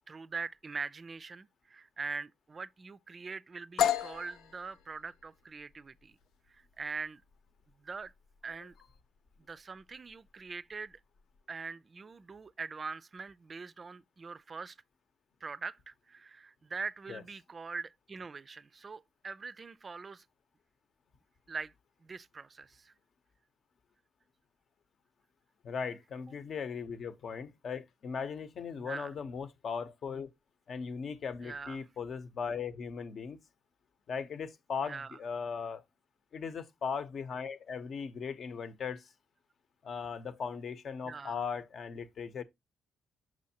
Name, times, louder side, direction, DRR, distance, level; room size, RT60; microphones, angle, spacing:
voice 1, 0.1-6.2 6.5-7.2 7.8-8.1 8.4-8.7 9.4-11.0 11.5-14.8 15.4-20.3 21.5-21.7 22.0-22.9 28.7-29.1 31.4-31.9 34.8-35.2 41.1-41.4, right 4 dB, 35° right, 0.4 m, -42 dB
sound 1, 3.8-11.4, left 10 dB, 85° left, 0.6 m, -37 dB
voice 2, 25.6-30.3 30.7-33.4 34.1-35.8 36.3-39.0 39.8-42.4, left 6 dB, 55° left, 0.9 m, -38 dB
6.3 x 6.3 x 2.8 m
cardioid pair, 90°, 0 cm